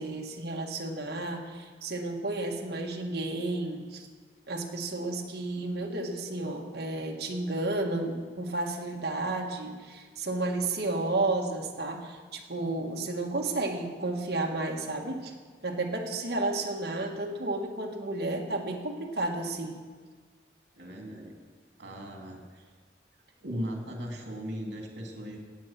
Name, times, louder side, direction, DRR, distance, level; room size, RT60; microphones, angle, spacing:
voice 1, 0.0-4.1 4.5-15.3 15.6-19.8, right 2 dB, 60° right, 0 dB, 1.8 m, -32 dB
voice 2, 20.7-21.4 21.8-22.7 23.4-25.4, equal, 75° right, 1 dB, 2.8 m, -38 dB
18.0 x 8.0 x 6.0 m, 1.5 s
head